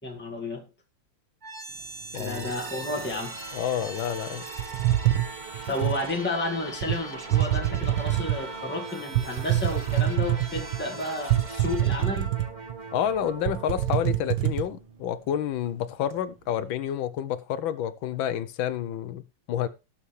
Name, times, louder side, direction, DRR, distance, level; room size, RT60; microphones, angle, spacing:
voice 1, 0.0-0.7 2.2-3.4 5.7-12.3, left 2 dB, 5° left, 1.9 m, -32 dB
sound 1, 1.4-15.3, right 3 dB, 25° right, 1.3 m, -40 dB
voice 2, 2.1-2.5 3.5-4.4 12.9-19.2 19.5-19.7, left 10 dB, 85° left, 1.6 m, -29 dB
sound 2, 4.6-6.0 6.8-7.0 7.3-8.5 9.1-10.8 11.3-12.7 13.1-13.2 13.5-14.7, right 13 dB, 80° right, 1.8 m, -25 dB
18.0 x 7.1 x 3.3 m
omnidirectional pair, 2.1 m